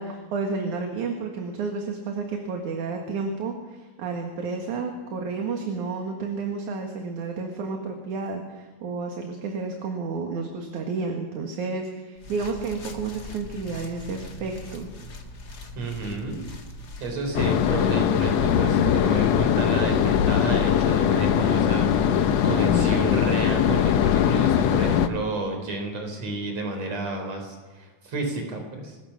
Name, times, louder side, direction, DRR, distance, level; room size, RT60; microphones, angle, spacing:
voice 1, 0.0-14.9, right 4 dB, 70° right, 3 dB, 3.3 m, -31 dB
sound 1, 12.2-17.3, left 1 dB, 35° left, 2.1 m, -41 dB
voice 2, 15.8-16.4 17.0-29.0, right 3 dB, 55° right, 4 dB, 5.5 m, -31 dB
sound 2, 17.3-25.1, left 9 dB, 65° left, 2.0 m, -21 dB
25.0 x 20.0 x 6.1 m, 1.3 s
omnidirectional pair, 3.5 m